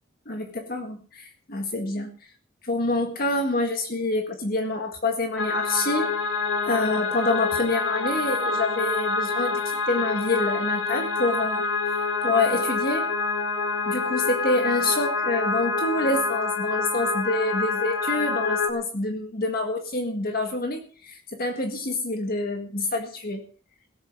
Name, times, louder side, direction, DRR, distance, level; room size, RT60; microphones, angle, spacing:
voice 1, 0.3-2.1 2.6-6.1 6.6-11.6 12.2-13.1 13.9-23.5, left 2 dB, 45° left, 4 dB, 1.8 m, -27 dB
sound 1, 5.4-18.7, left 4 dB, 65° left, 1.9 m, -27 dB
17.0 x 8.7 x 6.1 m, 0.40 s
head